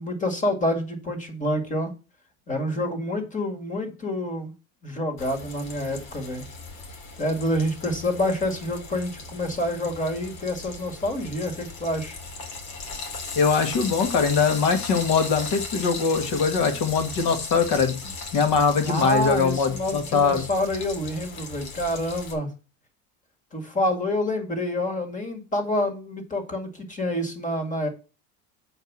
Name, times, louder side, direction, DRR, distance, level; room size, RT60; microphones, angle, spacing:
voice 1, 0.0-1.9 2.5-4.5 4.8-6.5 7.2-12.2 18.8-22.5 23.5-27.9, left 1 dB, 20° left, 5 dB, 1.9 m, -27 dB
Frying (food), 5.2-22.3, left 3 dB, 85° left, 2.7 m, -37 dB
voice 2, 13.4-17.9 18.3-20.4, left 5 dB, 50° left, 7 dB, 1.8 m, -22 dB
7.8 x 4.7 x 6.0 m, 0.33 s
cardioid pair, 160°, 42 cm